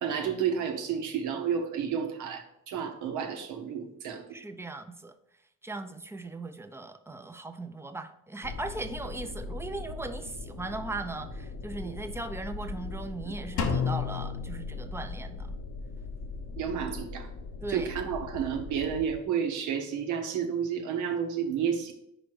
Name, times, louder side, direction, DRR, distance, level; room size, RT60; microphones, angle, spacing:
voice 1, 0.0-4.2 11.8-11.9 13.2-13.3 16.5-17.3 17.7-21.9, right 7 dB, 85° right, 4 dB, 1.0 m, -31 dB
voice 2, 4.3-5.1 5.6-15.5 17.6-17.9, right 2 dB, 10° right, 8 dB, 0.5 m, -38 dB
sound 1, 8.4-19.2, left 3 dB, 55° left, 0.9 m, -40 dB
Drum, 13.6-15.5, left 6 dB, 75° left, 1.0 m, -32 dB
5.0 x 5.0 x 4.7 m, 0.78 s
cardioid pair, 90°, 30 cm